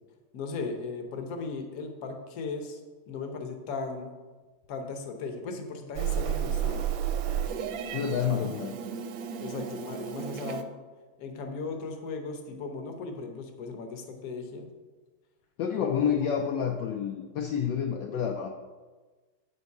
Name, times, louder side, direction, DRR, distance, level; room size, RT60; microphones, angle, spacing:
voice 1, 0.3-2.8 3.1-4.1 4.7-6.8 8.4-8.5 9.4-10.7 11.2-14.7 15.8-16.1, left 4 dB, 55° left, 4 dB, 1.2 m, -37 dB
Meow, 5.9-10.6, right 9 dB, 75° right, 1.3 m, -32 dB
voice 2, 7.9-8.7 15.6-18.5, left 8 dB, 75° left, 2 dB, 1.2 m, -29 dB
7.9 x 5.4 x 4.7 m, 1.3 s
omnidirectional pair, 2.2 m